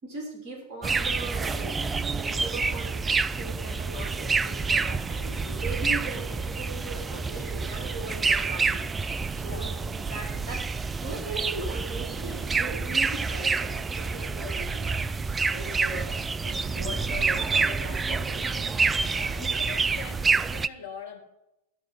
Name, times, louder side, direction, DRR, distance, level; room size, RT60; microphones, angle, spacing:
voice 1, 0.0-3.0 3.3-8.9 9.4-10.7 11.0-16.1 16.4-18.9 19.4-19.6, right 2 dB, 35° right, 0 dB, 2.9 m, -39 dB
sound 1, 0.8-20.7, right 4 dB, 15° right, 0.3 m, -28 dB
voice 2, 9.4-9.7 19.0-21.2, left 7 dB, 60° left, 1 dB, 2.4 m, -43 dB
13.0 x 5.2 x 8.3 m, 0.90 s
figure-of-eight pair, 90°, 0 cm